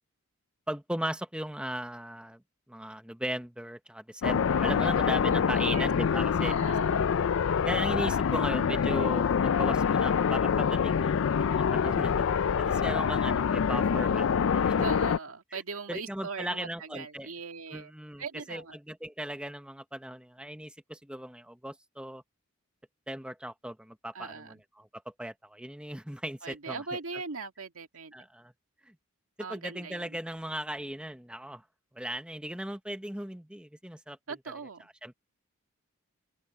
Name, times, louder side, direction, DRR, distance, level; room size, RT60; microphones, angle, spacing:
voice 1, 0.7-2.4 2.7-6.5 7.2-7.3 7.6-12.3 12.6-14.9 15.5-15.6 15.9-17.3 17.7-22.2 23.1-26.8 28.1-28.5 28.8-28.9 29.5-31.6 31.9-34.2 35.0-35.2, right 1 dB, 5° right, 0.9 m, -37 dB
sound 1, 4.2-15.2, left 7 dB, 65° left, 0.4 m, -26 dB
voice 2, 4.8-5.8 6.4-7.2 14.8-17.9 18.2-18.8 24.1-24.6 26.4-28.1 29.4-30.1 34.3-34.8, right 4 dB, 80° right, 1.9 m, -40 dB
open air
head